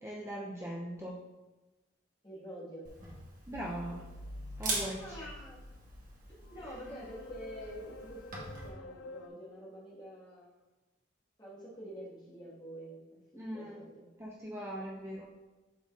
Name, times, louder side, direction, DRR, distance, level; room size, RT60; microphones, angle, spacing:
voice 1, 0.0-1.1 3.5-4.0 4.6-5.3 6.6-6.7 13.3-13.8 14.2-15.3, equal, 15° right, -4 dB, 0.5 m, -40 dB
voice 2, 2.2-2.9 4.9-5.6 6.5-8.2 8.6-10.5 11.4-13.2 13.5-14.1, equal, 20° left, -7 dB, 1.7 m, -47 dB
Camera, 2.8-8.7, right 2 dB, 45° right, 1.5 m, -43 dB
sound 1, 3.5-9.3, left 1 dB, 70° left, 0.4 m, -48 dB
11.0 x 3.9 x 2.5 m, 1.1 s
head